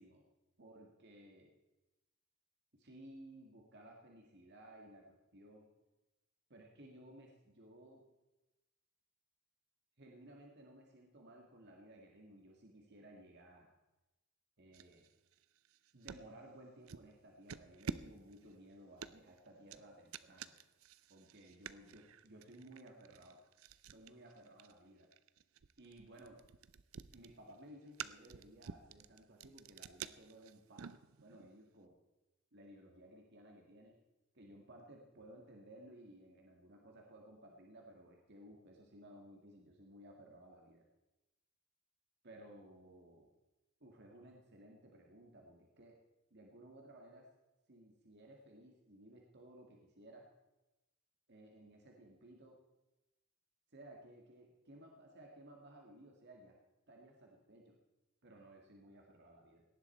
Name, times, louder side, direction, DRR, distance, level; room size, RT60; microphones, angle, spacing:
voice 1, 0.6-1.5 2.7-5.7 6.5-8.1 10.0-13.7 14.6-15.1 15.9-20.6 21.1-23.4 23.9-25.1 25.8-26.4 27.1-32.0 32.5-34.0 34.3-40.9 42.2-43.3 43.8-46.0 46.3-47.3 47.7-50.3 51.3-52.6 53.7-56.6 56.9-57.8 58.2-59.6, right 1 dB, 50° right, 1 dB, 1.9 m, -58 dB
waterbottle tilted, 14.7-16.3 16.9-17.1 17.5-31.5, right 6 dB, 75° right, 0.6 m, -50 dB
18.0 x 11.0 x 4.4 m, 1.0 s
head